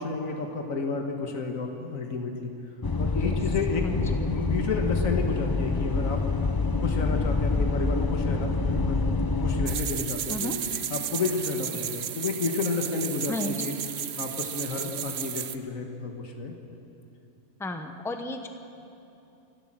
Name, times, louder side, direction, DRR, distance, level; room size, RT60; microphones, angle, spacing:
voice 1, 0.0-2.5 3.0-6.2 6.8-10.6 10.9-13.7 14.2-16.5, left 4 dB, 70° left, 3 dB, 1.9 m, -31 dB
sound 1, 2.8-9.7, left 3 dB, 30° left, 0.4 m, -26 dB
voice 2, 3.8-4.2 10.3-10.6 13.3-13.8 17.6-18.5, left 1 dB, ahead, 6 dB, 1.0 m, -34 dB
sound 2, 9.7-15.6, right 9 dB, 60° right, 0.8 m, -33 dB
29.0 x 12.0 x 7.5 m, 2.8 s
omnidirectional pair, 1.4 m